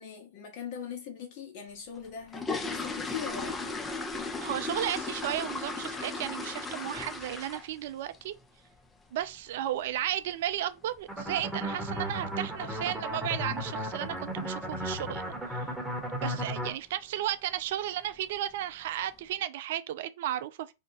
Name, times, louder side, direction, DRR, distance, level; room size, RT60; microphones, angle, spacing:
voice 1, 0.0-3.8, left 7 dB, 45° left, 1.3 m, -41 dB
sound 1, 2.0-7.9 8.1-8.4 8.8-8.9 9.2-9.4 9.8-10.0 10.2-10.3 10.9-11.0 11.3-11.4 12.0-12.3 12.5-12.6 13.0-13.3 13.6-13.7 14.1-14.2 14.8-15.1 15.5-15.8 16.1-16.2 16.7-16.8 17.5-17.7 18.1-18.6 19.0-19.1, left 3 dB, 15° left, 0.5 m, -36 dB
voice 2, 4.4-8.3 9.1-15.7 16.1-20.7, right 12 dB, 65° right, 0.4 m, -34 dB
sound 2, 11.1-16.7, equal, 5° right, 1.0 m, -35 dB
2.8 x 2.2 x 4.0 m
hypercardioid pair, 110°, 0 cm